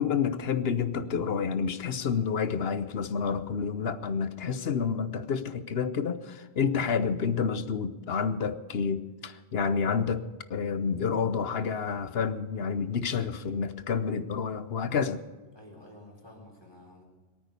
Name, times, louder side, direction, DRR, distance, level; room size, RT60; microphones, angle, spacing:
voice 1, 0.0-10.2 10.5-15.2, left 6 dB, 65° left, 13 dB, 1.1 m, -29 dB
voice 2, 9.6-9.9 15.5-17.0, left 1 dB, 20° left, -2 dB, 4.4 m, -50 dB
22.0 x 9.2 x 6.9 m, 1.4 s
omnidirectional pair, 1.1 m